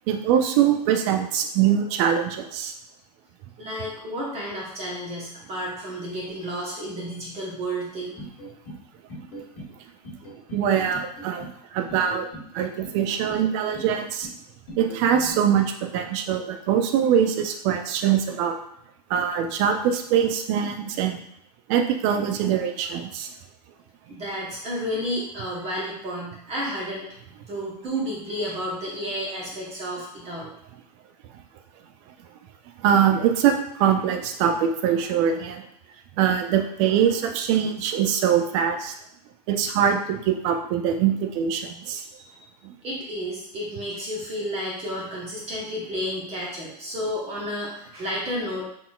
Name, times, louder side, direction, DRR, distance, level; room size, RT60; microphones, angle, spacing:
voice 1, 0.1-2.7 10.5-12.3 12.5-14.3 14.8-18.6 19.1-21.2 21.7-23.3 32.8-35.6 36.2-38.9 39.5-42.0 42.6-42.7, right 8 dB, 50° right, 5 dB, 0.6 m, -23 dB
voice 2, 3.6-8.2 24.1-27.1 27.5-30.5 42.2-42.4 42.8-48.6, equal, 30° right, -4 dB, 1.3 m, -31 dB
sound 1, 8.2-8.8 9.1-9.7 10.0-10.6 10.9-11.5 11.9-12.5 12.8-13.4 13.7-14.3 14.7-15.3, right 1 dB, 45° left, 1.5 m, -40 dB
4.2 x 3.6 x 2.4 m, 0.70 s
hypercardioid pair, 100°, 20 cm